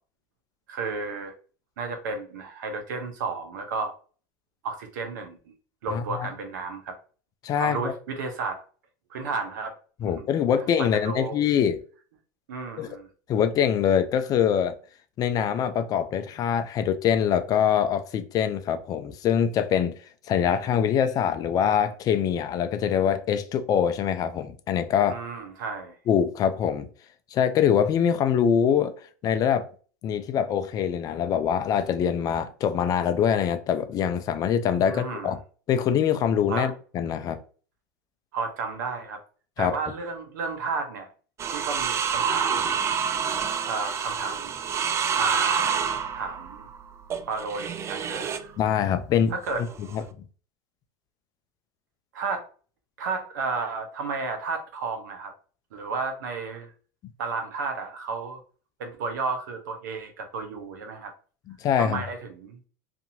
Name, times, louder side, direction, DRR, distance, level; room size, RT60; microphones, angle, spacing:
voice 1, 0.7-1.3 1.8-3.9 4.6-5.5 5.8-7.0 7.6-8.6 9.1-9.8 10.2-10.3 10.8-11.4 12.5-13.1 25.1-26.0 34.9-35.3 36.5-36.7 38.3-39.2 39.6-41.1 41.5-42.8 43.6-44.5 45.2-45.8 46.1-46.7 47.3-48.5 49.3-49.6 52.1-52.5 53.0-55.3 55.7-56.7 57.2-58.4 58.8-61.1 61.8-62.6, right 4 dB, 80° right, 0.8 m, -32 dB
voice 2, 5.9-6.3 7.4-7.9 10.0-11.8 12.8-12.9 13.3-14.7 15.2-19.9 20.3-25.2 26.1-26.9 27.3-28.9 29.2-29.7 30.0-35.4 35.7-37.4 39.6-39.8 48.6-49.3 49.8-50.0 61.5-62.0, left 8 dB, 40° left, 0.4 m, -24 dB
sound 1, 41.4-48.5 49.5-50.0, right 7 dB, 30° right, 0.3 m, -28 dB
2.7 x 2.5 x 2.6 m
supercardioid pair, 105°, 10 cm